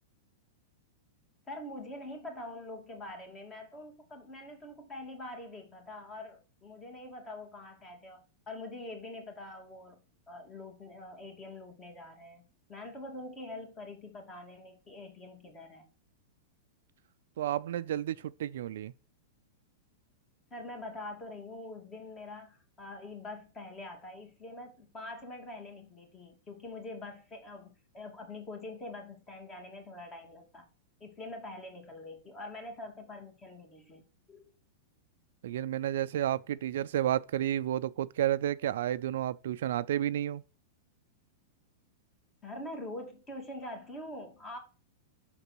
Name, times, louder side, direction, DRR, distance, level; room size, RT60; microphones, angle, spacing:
voice 1, 1.5-10.0 10.3-12.4 12.7-15.9 20.5-30.6 31.0-34.0 34.3-34.4 42.4-44.6, left 2 dB, 25° left, 2.3 m, -44 dB
voice 2, 17.4-18.9 35.4-40.4, right 11 dB, 70° right, 0.3 m, -31 dB
5.9 x 3.9 x 6.1 m
hypercardioid pair, 120°, 0 cm